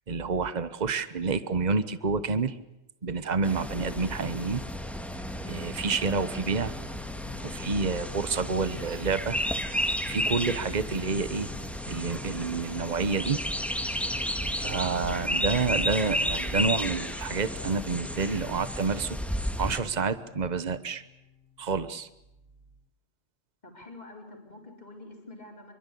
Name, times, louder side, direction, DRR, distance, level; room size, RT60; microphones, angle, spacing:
voice 1, 0.1-2.5 3.0-4.6 5.5-6.7 7.4-9.4 9.7-11.5 11.9-13.4 14.6-19.2 19.6-21.0 21.6-22.1, right 4 dB, 40° right, 13 dB, 1.3 m, -29 dB
sound 1, 3.4-19.8, equal, ahead, 1.9 m, -33 dB
sound 2, 3.5-7.0, right 5 dB, 65° right, 6.6 m, -61 dB
sound 3, 3.6-21.6, left 4 dB, 55° left, 1.5 m, -44 dB
voice 2, 23.6-25.7, left 2 dB, 40° left, 1 dB, 4.7 m, -46 dB
26.0 x 24.0 x 8.5 m, 0.88 s
omnidirectional pair, 1.1 m